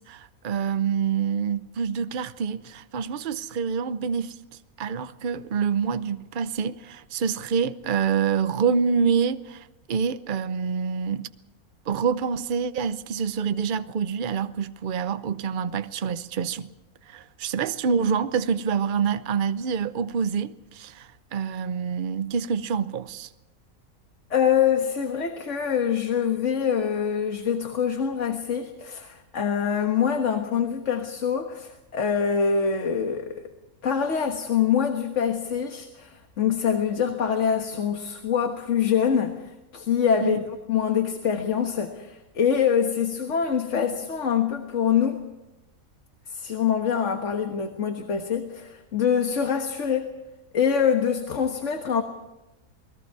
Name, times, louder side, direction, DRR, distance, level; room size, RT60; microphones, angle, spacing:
voice 1, 0.0-4.4 4.8-11.3 11.9-16.7 17.1-23.3 40.2-40.4, right 6 dB, 45° right, 0.8 m, -26 dB
voice 2, 24.3-33.4 33.8-40.4 40.7-45.3 46.3-50.1 50.5-52.0, left 7 dB, 55° left, 1.7 m, -25 dB
29.0 x 20.0 x 4.7 m
omnidirectional pair, 1.5 m